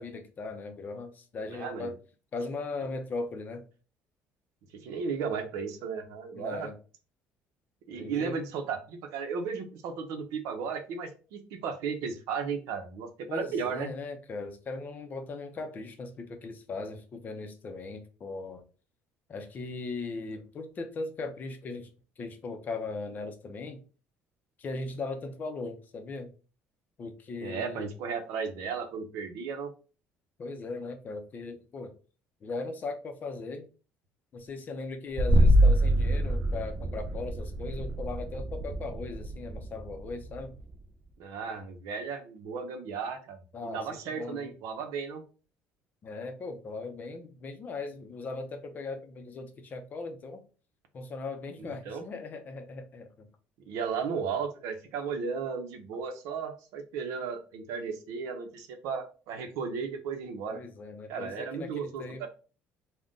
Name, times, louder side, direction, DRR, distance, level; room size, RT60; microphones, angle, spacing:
voice 1, 0.0-1.9 2.3-3.6 6.3-6.7 8.0-8.4 13.3-18.6 19.3-21.9 22.2-23.8 24.6-26.3 27.0-27.9 30.4-31.9 32.4-33.7 34.3-40.6 43.5-43.8 44.1-44.5 46.0-50.4 50.9-53.3 60.5-62.3, left 3 dB, 35° left, 7 dB, 0.5 m, -38 dB
voice 2, 1.5-1.9 4.7-6.7 7.9-13.9 27.4-29.7 41.2-45.2 51.6-52.0 53.7-60.6 61.1-62.3, right 6 dB, 85° right, 6 dB, 0.6 m, -35 dB
sound 1, 35.2-40.7, right 1 dB, 30° right, 0.3 m, -25 dB
2.5 x 2.1 x 3.6 m, 0.36 s
cardioid pair, 135°, 5 cm